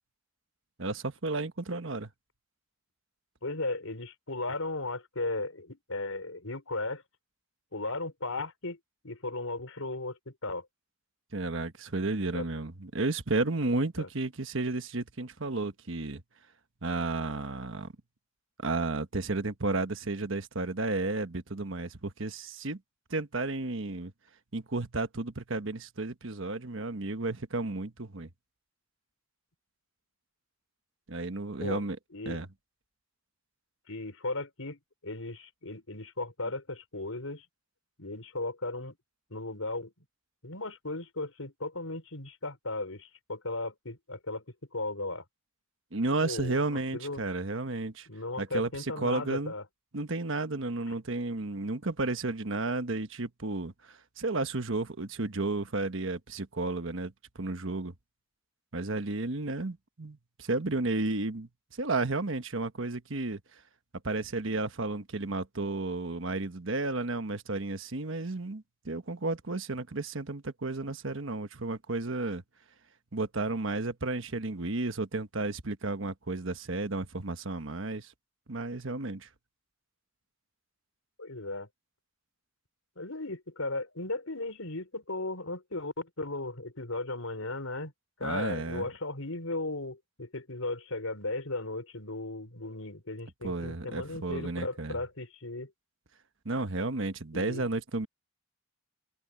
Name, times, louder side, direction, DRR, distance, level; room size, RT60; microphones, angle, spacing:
voice 1, 0.8-2.1 11.3-16.2 16.8-17.9 18.6-22.8 23.1-24.1 24.5-28.3 31.1-32.0 32.3-32.5 45.9-48.1 48.4-48.7 49.0-49.5 49.9-57.1 57.4-57.9 58.7-61.5 61.8-63.4 64.0-72.4 73.1-78.1 78.5-79.3 88.2-88.8 93.4-95.0 96.4-98.1, right 2 dB, 65° right, 1.3 m, -32 dB
voice 2, 3.4-7.0 7.7-8.8 9.0-10.7 12.3-12.5 14.0-14.1 31.6-31.8 32.1-32.4 33.9-37.4 38.0-39.0 39.3-40.1 40.4-44.4 44.7-45.2 46.2-47.2 48.1-49.6 81.2-81.7 83.0-87.9 88.2-95.7 97.3-97.6, left 2 dB, 80° left, 4.6 m, -36 dB
head